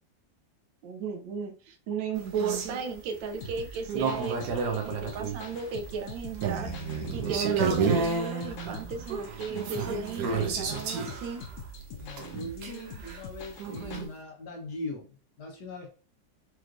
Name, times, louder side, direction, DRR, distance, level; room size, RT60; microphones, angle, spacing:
voice 1, 0.8-6.7 7.1-11.4, right 5 dB, 85° right, 5 dB, 1.5 m, -35 dB
sound 1, 2.1-14.1, right 5 dB, 70° right, 1.3 m, -31 dB
sound 2, 3.4-14.1, left 2 dB, 80° left, 0.6 m, -45 dB
voice 2, 12.0-15.9, left 2 dB, 65° left, 0 dB, 1.4 m, -40 dB
4.6 x 3.1 x 2.5 m, 0.39 s
omnidirectional pair, 2.0 m